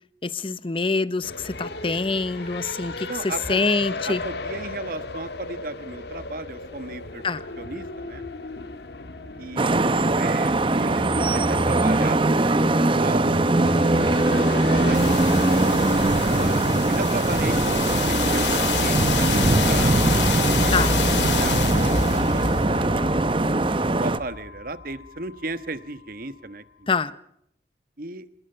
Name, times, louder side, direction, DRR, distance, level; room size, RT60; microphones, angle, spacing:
voice 1, 0.2-4.2 7.2-7.4 20.7-20.9 26.9-27.2, left 4 dB, 30° left, 0.8 m, -25 dB
sound 1, 1.2-17.8, left 3 dB, 70° left, 1.7 m, -36 dB
voice 2, 3.1-3.6 4.1-7.2 7.6-8.3 9.4-13.3 14.7-16.5 16.9-19.4 19.7-20.8 21.3-21.8 22.1-22.9 24.0-26.9 28.0-28.3, right 2 dB, 55° right, 1.3 m, -35 dB
Vehicle horn car horn honking / Traffic noise roadway noise, 9.6-24.2, right 2 dB, 30° right, 0.8 m, -21 dB
sound 2, 13.2-25.1, left 4 dB, 90° left, 2.4 m, -28 dB
28.0 x 20.0 x 5.6 m
head